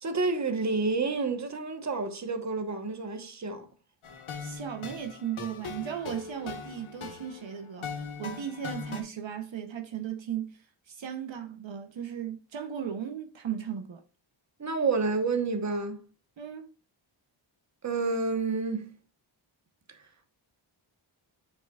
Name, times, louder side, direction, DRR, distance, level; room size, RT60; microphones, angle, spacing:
voice 1, 0.0-3.7 14.6-16.0 17.8-18.9 19.9-20.0, right 4 dB, 35° right, 1.2 m, -29 dB
sound 1, 4.0-9.0, left 5 dB, 85° left, 1.4 m, -40 dB
voice 2, 4.4-14.0 16.4-16.7, right 9 dB, 70° right, 0.9 m, -36 dB
8.8 x 5.2 x 2.4 m
wide cardioid pair, 125°, 48 cm